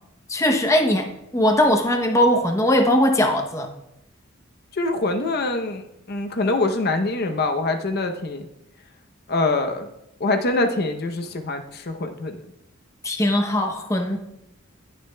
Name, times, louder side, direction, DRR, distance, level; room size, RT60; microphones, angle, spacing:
voice 1, 0.3-1.1 1.3-3.7 13.0-14.2, left 1 dB, 15° left, 4 dB, 0.7 m, -20 dB
voice 2, 4.7-8.5 9.3-9.9 10.2-12.4, left 2 dB, 50° left, 6 dB, 0.7 m, -24 dB
19.0 x 6.5 x 2.2 m, 0.86 s
head